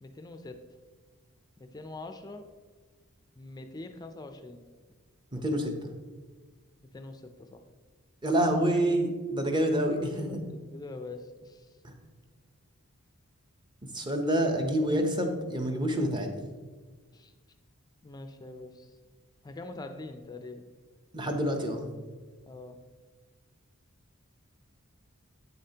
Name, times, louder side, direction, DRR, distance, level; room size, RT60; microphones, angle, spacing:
voice 1, 0.0-0.6 1.6-2.4 3.4-4.6 6.8-7.6 10.1-11.8 17.1-17.3 18.0-19.0 19.4-20.7 22.5-22.8, left 2 dB, 20° left, 7 dB, 0.4 m, -44 dB
voice 2, 5.3-5.9 8.2-10.3 11.8-11.9 13.8-16.4 21.1-21.9, right 1 dB, 20° right, 4 dB, 0.7 m, -27 dB
8.3 x 6.6 x 2.8 m, 1.4 s
head